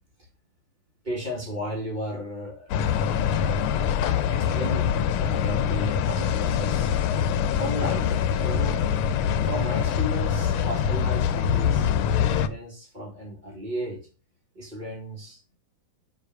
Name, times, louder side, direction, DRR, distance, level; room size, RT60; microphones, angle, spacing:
voice 1, 1.0-2.7 4.3-4.9 5.2-6.9 7.6-8.8 9.4-14.0 14.5-15.4, equal, 20° right, -2 dB, 2.2 m, -34 dB
sound 1, 2.7-12.5, left 8 dB, 90° left, 1.5 m, -24 dB
5.9 x 4.0 x 4.6 m, 0.35 s
omnidirectional pair, 2.3 m